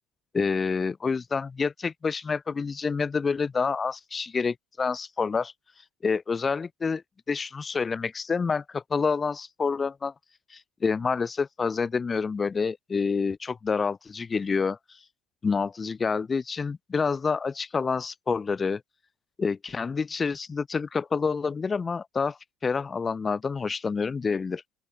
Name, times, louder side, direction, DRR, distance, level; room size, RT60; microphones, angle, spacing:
voice 1, 0.3-5.5 6.0-7.0 7.3-10.1 10.5-14.8 15.4-18.8 19.4-24.6, left 5 dB, 25° left, 1.0 m, -28 dB
open air
hypercardioid pair, 75°, 0 cm